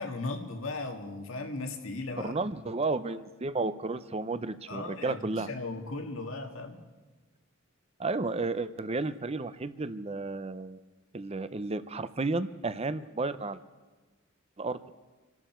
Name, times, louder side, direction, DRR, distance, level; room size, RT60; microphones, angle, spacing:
voice 1, 0.0-2.3 4.7-6.8, left 3 dB, 75° left, 4 dB, 1.9 m, -37 dB
voice 2, 2.2-5.5 8.0-10.8 11.1-13.6 14.6-14.8, right 3 dB, 30° right, 13 dB, 0.6 m, -32 dB
27.0 x 12.0 x 4.5 m, 1.3 s
head